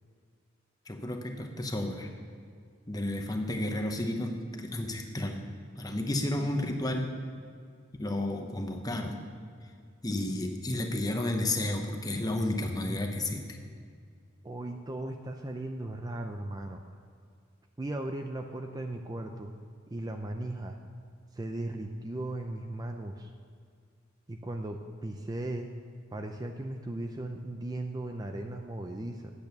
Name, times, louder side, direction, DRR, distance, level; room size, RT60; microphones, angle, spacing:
voice 1, 0.9-2.1 2.9-5.4 5.8-7.2 8.0-9.2 10.0-13.6, left 1 dB, 20° left, 4 dB, 0.9 m, -32 dB
voice 2, 14.4-16.8 17.8-19.5 19.9-20.8 21.3-23.3 24.3-25.7 26.1-29.3, right 1 dB, 20° right, 4 dB, 0.4 m, -37 dB
8.8 x 8.2 x 6.5 m, 2.2 s
head